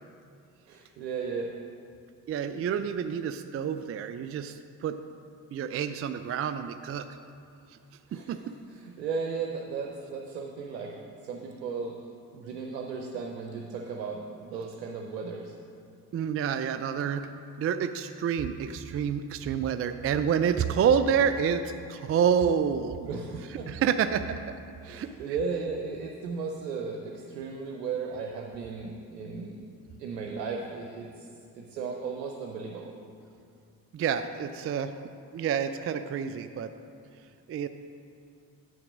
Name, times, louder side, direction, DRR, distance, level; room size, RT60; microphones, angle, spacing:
voice 1, 0.7-1.5 8.1-8.4 8.7-12.0 12.3-15.5 23.1-23.7 24.8-29.7 30.0-31.3 31.5-32.9, right 5 dB, 85° right, 1 dB, 0.7 m, -35 dB
voice 2, 2.3-5.0 5.5-7.1 8.1-8.4 16.1-17.3 17.6-21.6 21.9-23.1 23.7-24.2 24.8-25.1 33.9-34.9 35.3-36.7 37.5-37.7, right 7 dB, 30° right, 9 dB, 0.4 m, -28 dB
8.7 x 5.8 x 6.1 m, 2.4 s
hypercardioid pair, 40°, 49 cm